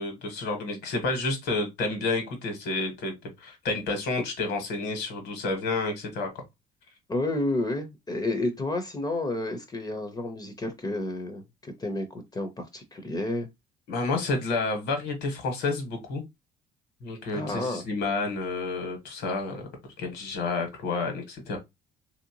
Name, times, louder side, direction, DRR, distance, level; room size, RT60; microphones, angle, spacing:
voice 1, 0.0-6.4 13.9-16.2 17.0-19.6 20.0-21.6, left 3 dB, 80° left, 1.4 m, -30 dB
voice 2, 7.1-13.5 17.3-17.8, left 2 dB, 25° left, 0.7 m, -31 dB
3.2 x 2.7 x 2.8 m
cardioid pair, 110°, 17 cm